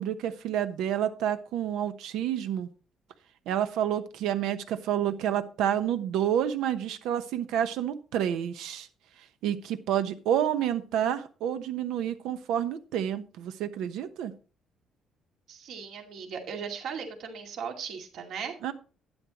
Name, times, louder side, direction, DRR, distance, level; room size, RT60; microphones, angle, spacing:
voice 1, 0.0-2.7 3.5-8.9 9.4-14.3 18.6-18.7, right 10 dB, 90° right, 1.0 m, -29 dB
voice 2, 15.5-18.5, right 6 dB, 65° right, 2.2 m, -37 dB
11.5 x 9.9 x 3.0 m
cardioid pair, 160°, 0 cm